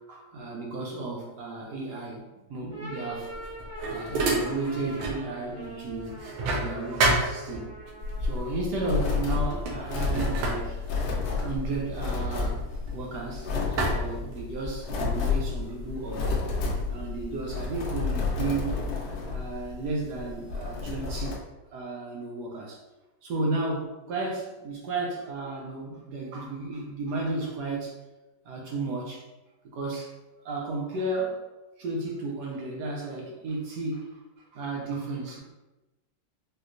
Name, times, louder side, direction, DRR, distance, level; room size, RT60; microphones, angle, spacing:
voice 1, 0.0-3.3 3.9-6.2 6.5-7.7 8.2-10.8 11.4-12.6 12.9-16.4 16.9-18.9 19.3-21.4 21.7-22.8 23.2-27.9 28.4-29.3 29.7-30.1 30.4-31.4 31.8-34.2 34.5-35.4, right 3 dB, 70° right, -2 dB, 1.0 m, -33 dB
sound 1, 2.6-8.6, right 1 dB, 30° right, 1.0 m, -43 dB
sound 2, 3.2-5.3 5.6-7.9 8.8-9.1 9.4-13.3 13.8-14.9, right 2 dB, 85° right, 1.5 m, -30 dB
sound 3, 8.0-21.3, left 4 dB, 70° left, 0.9 m, -31 dB
4.4 x 2.2 x 2.5 m, 1.1 s
omnidirectional pair, 2.3 m